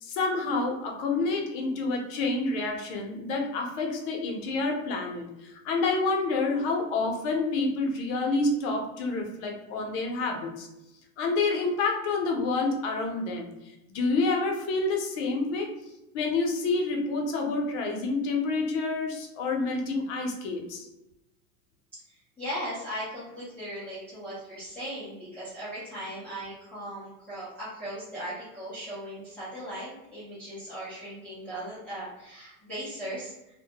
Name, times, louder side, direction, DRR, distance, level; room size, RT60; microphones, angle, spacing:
voice 1, 0.0-10.7 11.2-13.5 13.9-15.7 16.1-20.9, left 3 dB, 50° left, 1 dB, 0.6 m, -28 dB
voice 2, 22.4-33.3, equal, 5° left, -13 dB, 0.3 m, -38 dB
2.1 x 2.1 x 2.7 m, 0.92 s
supercardioid pair, 150°, 47 cm